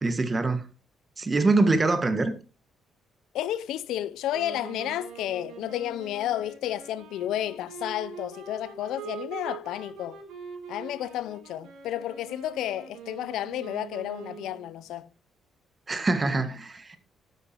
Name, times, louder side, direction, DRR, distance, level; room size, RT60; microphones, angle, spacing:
voice 1, 0.0-0.6 1.2-2.3 15.9-17.0, right 3 dB, 30° right, 1.7 m, -24 dB
voice 2, 3.3-10.2 10.7-15.1, left 12 dB, 85° left, 0.5 m, -32 dB
sound 1, 4.3-14.7, right 6 dB, 85° right, 3.6 m, -43 dB
12.0 x 9.1 x 3.0 m
cardioid pair, 90°, 0 cm